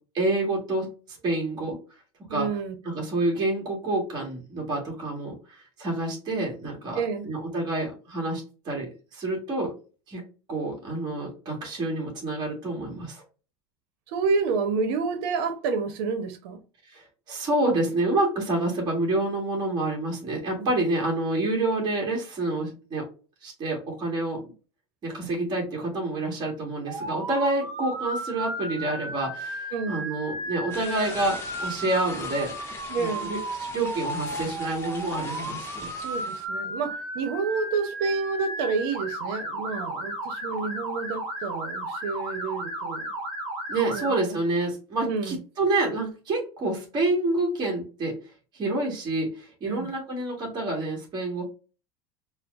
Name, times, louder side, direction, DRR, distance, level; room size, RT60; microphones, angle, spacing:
voice 1, 0.1-1.8 2.3-2.5 2.8-9.7 10.1-10.2 10.5-13.2 16.9-23.0 23.4-24.4 25.0-32.5 32.9-35.9 43.7-48.2 48.5-51.4, right 2 dB, 35° right, 1.6 m, -28 dB
voice 2, 2.3-3.0 6.9-7.3 14.1-16.6 20.6-20.7 25.2-25.4 29.7-30.1 32.9-33.3 36.0-43.1 43.9-44.1 45.0-45.4 49.7-49.9, right 4 dB, 80° right, 0.8 m, -29 dB
Motor vehicle (road) / Siren, 26.9-44.2, right 1 dB, 55° right, 1.1 m, -34 dB
sound 1, 30.7-36.5, left 3 dB, 20° left, 0.8 m, -41 dB
4.3 x 2.1 x 2.5 m
supercardioid pair, 145°, 13 cm